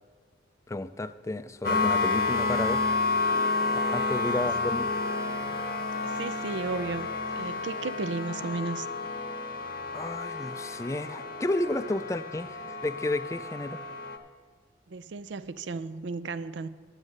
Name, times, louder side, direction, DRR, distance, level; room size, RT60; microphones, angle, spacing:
voice 1, 0.7-2.9 3.7-4.9 9.9-13.8, left 2 dB, 15° left, 13 dB, 0.3 m, -32 dB
sound 1, 1.6-14.2, left 3 dB, 55° left, 0.8 m, -30 dB
voice 2, 6.0-7.1 7.4-8.9 14.9-16.7, right 3 dB, 80° right, 13 dB, 0.5 m, -34 dB
9.7 x 7.3 x 6.5 m, 1.5 s
head